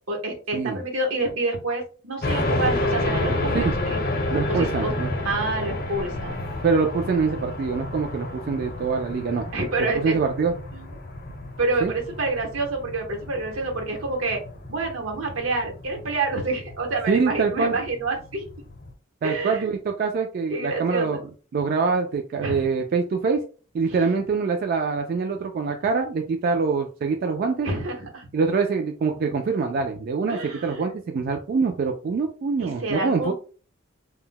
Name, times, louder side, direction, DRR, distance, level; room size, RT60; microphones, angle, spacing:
voice 1, 0.1-4.0 4.5-4.9 5.2-6.4 9.5-10.2 10.7-10.9 11.6-14.4 14.7-18.4 19.2-19.7 20.5-21.2 22.4-22.7 23.9-24.0 27.6-28.3 30.3-30.9 32.6-33.3, right 2 dB, 85° right, 1 dB, 0.9 m, -28 dB
sound 1, 2.2-18.9, left 2 dB, 50° left, 0.7 m, -30 dB
voice 2, 4.3-5.1 6.6-9.5 9.9-10.5 11.8-11.9 17.1-17.8 19.2-21.2 21.5-23.4 23.7-27.7 28.3-33.3, right 4 dB, 50° right, 4 dB, 0.3 m, -24 dB
2.2 x 2.0 x 3.7 m, 0.38 s
head